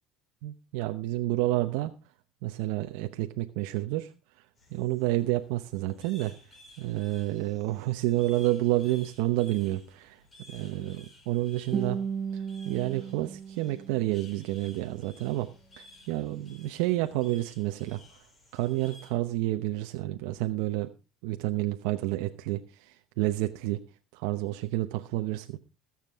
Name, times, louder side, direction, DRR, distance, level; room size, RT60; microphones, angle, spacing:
voice 1, 0.4-1.9 2.4-4.1 4.7-6.3 6.8-10.2 10.5-12.0 12.6-15.5 15.8-18.0 18.5-20.9 21.2-23.8 24.1-25.6, right 16 dB, 85° right, 6 dB, 0.8 m, -29 dB
sound 1, 4.6-19.1, left 2 dB, 25° left, 5.1 m, -56 dB
Guitar, 11.7-14.7, right 6 dB, 35° right, 0.8 m, -35 dB
21.5 x 7.4 x 3.5 m, 0.31 s
cardioid pair, 145°, 0 cm